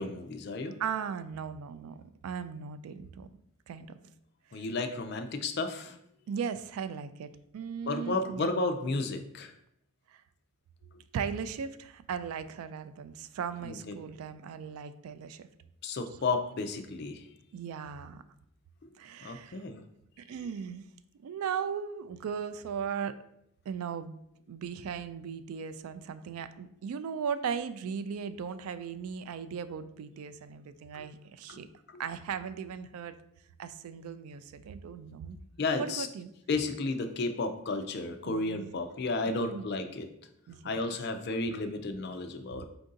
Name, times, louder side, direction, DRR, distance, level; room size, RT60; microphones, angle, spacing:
voice 1, 0.0-0.8 4.5-6.0 7.9-9.5 10.9-11.0 13.6-13.9 15.8-17.3 19.2-19.8 30.9-31.1 31.5-31.6 35.6-36.1 36.5-40.1 40.6-42.7, left 3 dB, 50° left, 6 dB, 0.4 m, -33 dB
voice 2, 0.8-3.3 3.7-4.0 4.5-4.6 6.3-8.5 10.1-10.2 11.1-15.5 17.5-18.2 19.0-19.6 20.2-20.8 21.2-23.2 23.7-24.2 24.5-31.7 32.0-33.2 33.6-35.4 35.8-36.3 38.2-38.7 39.3-39.7 40.5-40.8, right 7 dB, 90° right, 13 dB, 0.3 m, -37 dB
4.6 x 2.6 x 3.7 m, 0.76 s
head